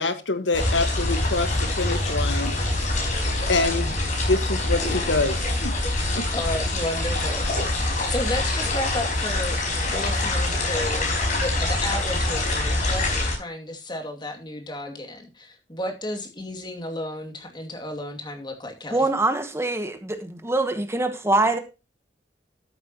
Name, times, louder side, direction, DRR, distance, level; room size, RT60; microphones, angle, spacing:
voice 1, 0.0-2.5 3.5-4.0 4.3-5.7 6.1-6.2, left 3 dB, 90° left, 1.5 m, -25 dB
sound 1, 0.5-13.3, left 2 dB, 45° left, 4.9 m, -25 dB
voice 2, 6.3-9.6 9.9-19.1, left 1 dB, 25° left, 2.5 m, -33 dB
voice 3, 18.9-21.6, right 2 dB, 15° right, 1.2 m, -24 dB
13.5 x 8.5 x 3.0 m
head